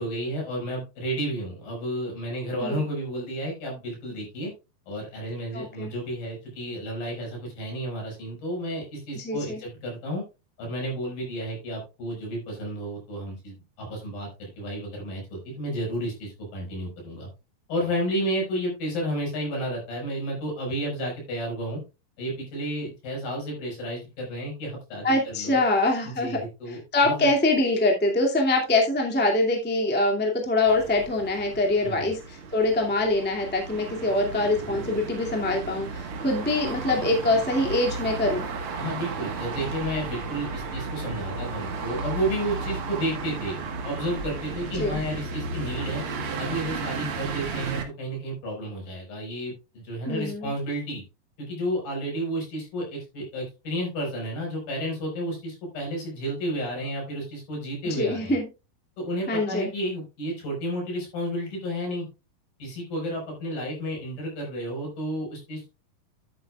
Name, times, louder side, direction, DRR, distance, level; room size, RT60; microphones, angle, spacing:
voice 1, 0.0-4.5 4.9-10.2 10.6-17.3 17.7-21.8 22.2-25.6 26.1-27.3 31.8-32.1 38.8-43.6 43.8-46.0 46.4-51.0 51.4-58.4 59.0-62.1 62.6-65.7, right 1 dB, 75° left, 0 dB, 7.1 m, -31 dB
voice 2, 5.5-5.9 9.1-9.6 25.0-26.4 26.9-38.4 44.8-45.0 50.0-50.5 57.9-58.5 59.3-59.7, left 2 dB, 5° left, 0 dB, 1.4 m, -24 dB
sound 1, 30.7-47.8, right 4 dB, 55° right, 1.6 m, -34 dB
11.5 x 9.3 x 2.4 m, 0.27 s
omnidirectional pair, 4.3 m